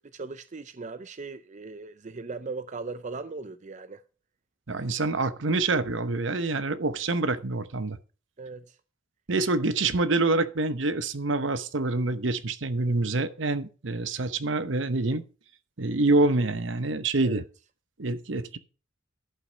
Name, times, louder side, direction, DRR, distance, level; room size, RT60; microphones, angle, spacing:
voice 1, 0.1-4.0 8.4-8.8 17.2-17.4, right 4 dB, 40° right, 0.5 m, -38 dB
voice 2, 4.7-8.0 9.3-15.2 15.8-17.4 18.0-18.6, right 3 dB, 65° right, 0.9 m, -26 dB
11.5 x 8.5 x 5.1 m
head